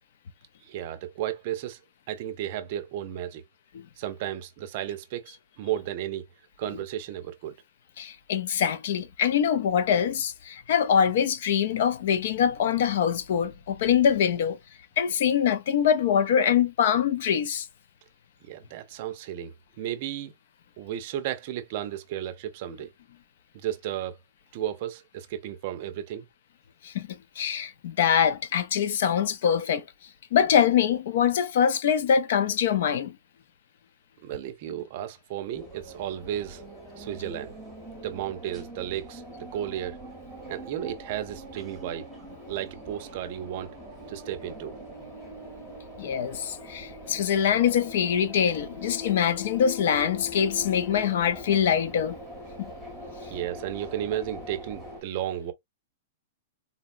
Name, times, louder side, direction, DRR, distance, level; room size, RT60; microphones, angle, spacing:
voice 1, 0.6-1.8 2.1-3.4 4.0-6.3 6.6-7.6 18.4-20.3 20.8-22.9 23.5-24.2 24.5-26.3 34.2-36.7 37.0-37.5 38.0-39.2 39.5-40.0 40.5-42.1 42.5-43.8 44.1-44.8 53.2-55.5, right 11 dB, 40° right, 0.5 m, -33 dB
voice 2, 8.0-14.6 15.0-17.7 26.8-27.1 27.4-29.8 30.3-33.2 46.0-52.2 52.6-52.7, left 8 dB, 55° left, 0.4 m, -24 dB
sound 1, 35.5-55.0, left 1 dB, ahead, 0.9 m, -42 dB
3.9 x 2.1 x 2.4 m
supercardioid pair, 170°, 0 cm